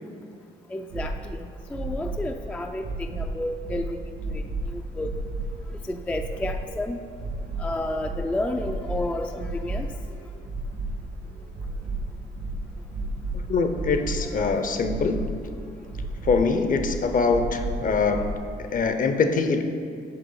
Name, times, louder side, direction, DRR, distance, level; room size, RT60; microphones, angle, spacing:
voice 1, 0.7-4.0 4.3-5.2 5.7-7.0 7.6-9.9 14.2-14.7, left 1 dB, 5° left, 5 dB, 0.3 m, -31 dB
sound 1, 0.9-18.3, right 2 dB, 80° right, 1.4 m, -33 dB
voice 2, 13.3-15.2 16.2-18.3 18.6-19.6, left 4 dB, 45° left, 8 dB, 0.6 m, -23 dB
6.7 x 5.0 x 5.5 m, 2.3 s
cardioid pair, 90°, 20 cm